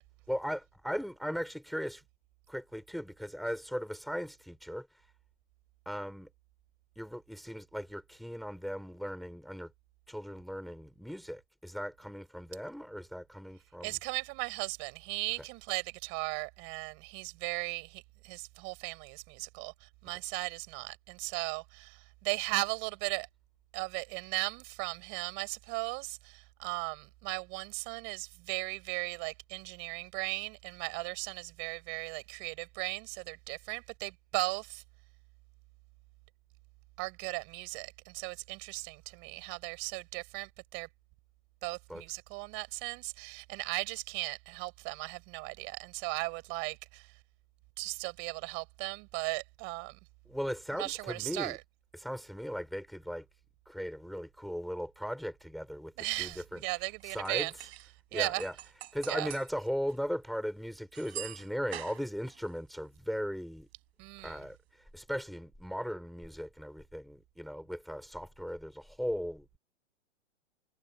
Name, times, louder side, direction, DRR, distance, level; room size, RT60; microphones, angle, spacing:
voice 1, 0.3-2.0 2.5-4.9 5.9-6.3 7.0-9.7 10.1-14.0 20.1-20.2 41.9-42.0 50.3-51.6 51.9-53.3 53.7-57.7 58.1-63.7 64.2-69.6, equal, ahead, 3.7 m, -38 dB
voice 2, 13.8-23.3 23.7-34.8 37.0-40.9 41.6-47.1 47.8-50.0 50.8-51.6 56.0-57.5 58.1-58.4 59.1-59.3 64.0-64.4, right 30 dB, 35° right, 6.9 m, -37 dB
sound 1, 56.9-57.9 58.2-59.5 59.9-60.0 60.9-62.5, right 14 dB, 60° right, 7.3 m, -45 dB
hypercardioid pair, 150°, 35 cm